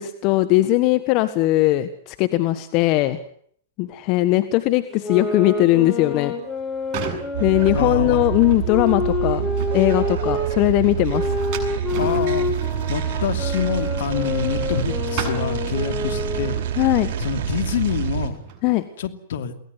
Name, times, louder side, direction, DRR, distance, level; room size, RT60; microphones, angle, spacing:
voice 1, 0.0-3.2 3.8-6.3 7.4-9.5 9.7-11.4 16.8-17.1 18.6-18.9, left 17 dB, 45° left, 10 dB, 1.4 m, -19 dB
sound 1, 4.9-10.5 11.1-16.7, left 4 dB, 10° left, 5.0 m, -28 dB
sound 2, 6.5-14.8 15.1-18.7, right 7 dB, 40° right, 7.6 m, -37 dB
sound 3, 7.3-18.3, right 10 dB, 60° right, 4.4 m, -27 dB
voice 2, 7.7-8.2 12.0-16.6 17.2-18.4 19.0-19.5, left 7 dB, 65° left, 8 dB, 2.8 m, -27 dB
23.0 x 18.5 x 9.5 m, 0.63 s
hypercardioid pair, 115°, 0 cm